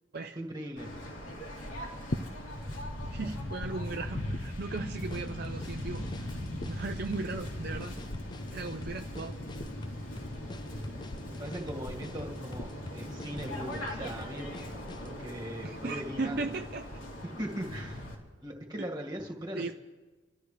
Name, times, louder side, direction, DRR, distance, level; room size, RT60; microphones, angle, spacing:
voice 1, 0.4-0.9 11.3-14.5 15.0-16.5 17.2-18.1 18.4-19.6, right 1 dB, 20° right, -1 dB, 1.9 m, -39 dB
Waves surf, 0.8-18.1, left 1 dB, 80° left, 3.4 m, -40 dB
sound 1, 2.1-3.0 3.2-5.6 5.8-13.5 13.7-14.3, left 1 dB, 50° left, 0.7 m, -41 dB
voice 2, 3.1-6.0 6.6-7.9 8.5-9.4 15.6-16.9 19.5-19.7, right 3 dB, 50° right, 4 dB, 0.6 m, -37 dB
sound 2, 4.4-15.2, left 2 dB, 20° left, 0.4 m, -47 dB
28.5 x 13.0 x 3.3 m, 1.3 s
head